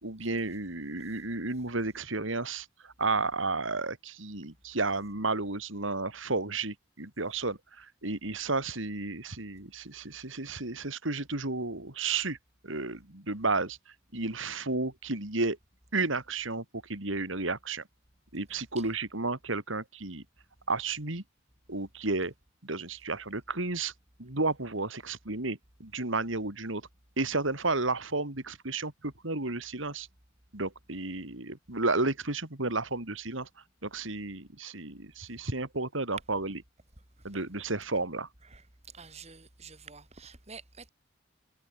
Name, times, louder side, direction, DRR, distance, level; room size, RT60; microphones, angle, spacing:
voice 1, 0.0-12.4 12.6-13.8 14.1-15.6 15.9-16.6 16.9-17.8 18.3-20.2 20.7-21.2 21.7-22.3 22.6-23.9 24.2-26.8 27.2-30.1 30.5-33.5 33.8-36.6 37.2-38.3, right 3 dB, 75° right, 3.3 m, -32 dB
voice 2, 38.9-40.9, right 5 dB, 35° right, 4.2 m, -49 dB
head